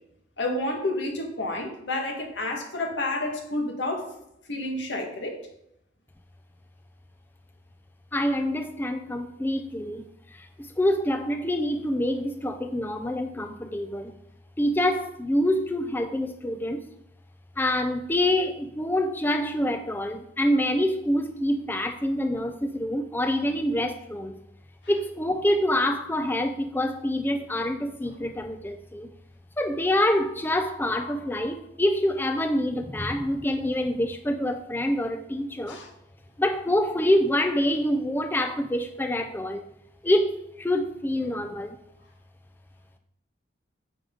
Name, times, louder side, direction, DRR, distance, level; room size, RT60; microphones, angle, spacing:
voice 1, 0.4-4.1 4.5-5.4 35.7-35.9, left 2 dB, 75° left, 2.0 m, -30 dB
voice 2, 8.1-10.1 10.3-14.1 14.6-16.9 17.6-24.4 24.9-29.1 29.6-35.8 36.4-39.6 40.0-41.8, left 1 dB, 10° left, 0.5 m, -26 dB
9.9 x 7.6 x 3.9 m
head